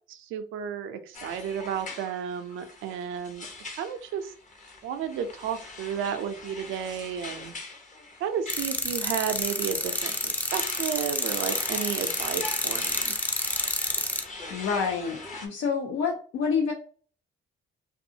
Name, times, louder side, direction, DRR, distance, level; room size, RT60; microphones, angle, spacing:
voice 1, 0.1-3.5 3.7-4.3 4.8-7.5 8.2-13.1, right 8 dB, 85° right, 8 dB, 0.4 m, -32 dB
sound 1, 1.1-15.5, left 3 dB, 40° left, 0.7 m, -41 dB
sound 2, 8.5-14.2, left 1 dB, 10° left, 0.4 m, -29 dB
voice 2, 14.5-16.7, left 6 dB, 80° left, 0 dB, 0.5 m, -28 dB
2.5 x 2.3 x 2.7 m, 0.43 s
cardioid pair, 90°, 20 cm